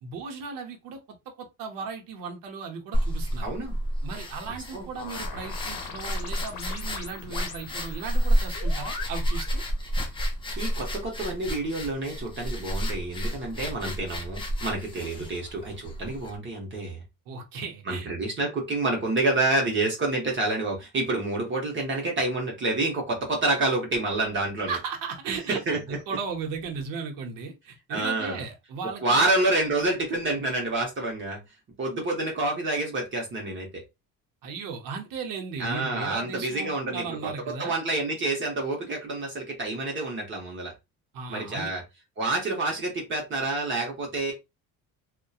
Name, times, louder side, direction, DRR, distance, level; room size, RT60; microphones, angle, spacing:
voice 1, 0.0-3.5 4.0-9.6 15.2-15.3 17.3-18.1 24.7-29.3 34.4-37.7 41.1-41.7, right 5 dB, 70° right, 0.8 m, -36 dB
sound 1, 2.9-16.4, equal, 15° left, 0.4 m, -30 dB
voice 2, 3.4-3.8 4.5-4.9 10.6-17.0 17.9-24.8 25.5-25.8 27.9-28.4 29.0-31.4 31.8-33.8 35.6-40.7 41.3-41.8 42.2-44.3, right 2 dB, 35° right, 0.8 m, -28 dB
sound 2, 5.0-9.6, left 6 dB, 85° left, 0.6 m, -41 dB
2.6 x 2.2 x 2.3 m
cardioid pair, 120°, 35 cm